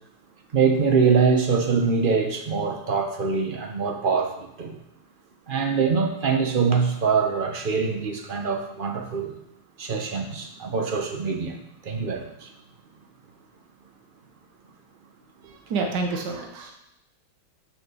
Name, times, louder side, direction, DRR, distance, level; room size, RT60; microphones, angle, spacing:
voice 1, 0.5-4.7 5.5-9.3 9.8-11.6 11.8-12.5, right 5 dB, 40° right, 4 dB, 0.8 m, -24 dB
voice 2, 15.4-16.7, right 4 dB, 65° right, 2 dB, 1.8 m, -29 dB
6.3 x 6.0 x 6.2 m, 0.81 s
omnidirectional pair, 2.0 m